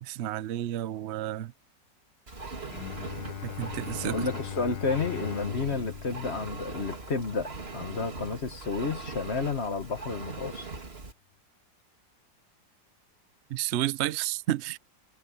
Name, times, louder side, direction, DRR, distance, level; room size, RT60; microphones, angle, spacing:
voice 1, 0.0-1.5 3.4-4.2 13.5-14.8, right 13 dB, 75° right, 0.6 m, -31 dB
Engine, 2.3-11.1, right 3 dB, 35° right, 3.1 m, -40 dB
Bowed string instrument, 2.7-8.4, left 12 dB, 90° left, 1.6 m, -41 dB
voice 2, 4.0-10.7, left 4 dB, 40° left, 1.4 m, -31 dB
omnidirectional pair, 1.9 m